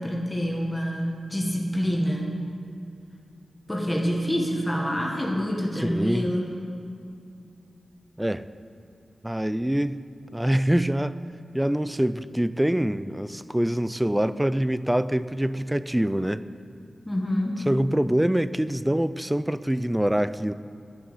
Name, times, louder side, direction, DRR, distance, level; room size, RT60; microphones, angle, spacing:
voice 1, 0.0-2.4 3.7-6.5 17.1-17.7, equal, 15° left, 0 dB, 1.4 m, -27 dB
voice 2, 5.8-6.3 8.2-8.4 9.2-10.0 10.3-11.2 11.5-16.4 17.7-20.5, right 1 dB, 10° right, 14 dB, 0.4 m, -25 dB
11.0 x 7.1 x 8.9 m, 2.5 s
wide cardioid pair, 90°, 0 cm